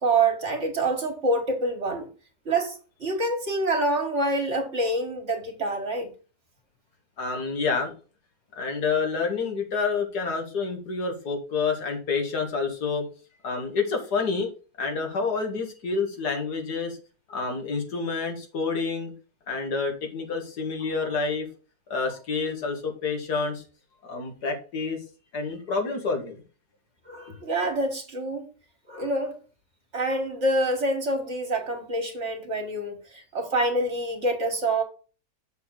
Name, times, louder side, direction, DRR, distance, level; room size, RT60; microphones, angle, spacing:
voice 1, 0.0-2.1 2.5-6.1 27.1-28.5 28.9-29.4 29.9-34.8, right 2 dB, 45° right, 1.9 m, -26 dB
voice 2, 7.2-7.9 8.6-13.1 13.4-14.5 14.8-17.0 17.3-19.1 19.5-21.5 21.9-23.6 24.0-25.0 25.3-26.4, left 4 dB, 85° left, 2.4 m, -28 dB
6.7 x 6.6 x 3.9 m
omnidirectional pair, 1.7 m